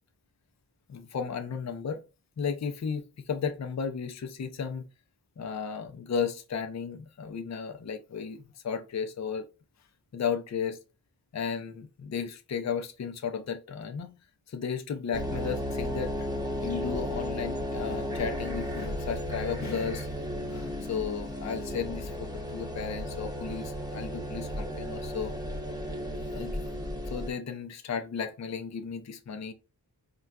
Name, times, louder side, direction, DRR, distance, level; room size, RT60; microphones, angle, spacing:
voice 1, 0.9-2.0 2.4-4.8 5.4-9.4 10.1-10.8 11.3-14.1 14.5-16.3 16.6-20.1 20.5-25.3 26.3-26.8 27.0-29.5, left 6 dB, 45° left, 0.5 m, -34 dB
sound 1, 15.1-27.3, equal, 10° right, 0.9 m, -34 dB
3.7 x 2.3 x 2.2 m
cardioid pair, 40°, 40 cm